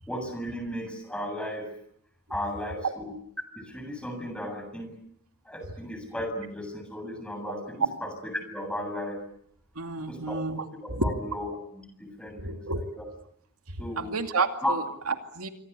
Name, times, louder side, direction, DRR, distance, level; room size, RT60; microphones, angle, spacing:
voice 1, 0.1-1.7 2.3-3.1 3.5-4.9 5.5-9.2 10.1-10.4 10.8-13.0 13.8-14.1 14.6-14.7, left 1 dB, 5° left, 5 dB, 7.6 m, -35 dB
voice 2, 9.8-11.1 12.4-12.8 13.7-15.5, right 3 dB, 80° right, 6 dB, 2.4 m, -31 dB
27.5 x 25.0 x 8.3 m, 0.71 s
head